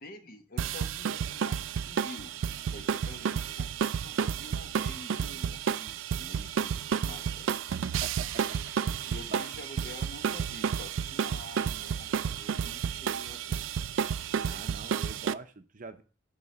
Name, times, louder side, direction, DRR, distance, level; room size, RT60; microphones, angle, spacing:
voice 1, 0.0-2.4 2.7-7.5 9.1-13.6, left 1 dB, 45° left, 7 dB, 1.0 m, -48 dB
sound 1, 0.6-15.3, right 6 dB, 15° right, 0.9 m, -49 dB
sound 2, 0.6-15.3, right 7 dB, 85° right, 0.3 m, -31 dB
voice 2, 7.9-8.7 14.4-16.0, right 3 dB, 45° right, 9 dB, 0.7 m, -45 dB
9.5 x 4.0 x 6.1 m, 0.37 s
head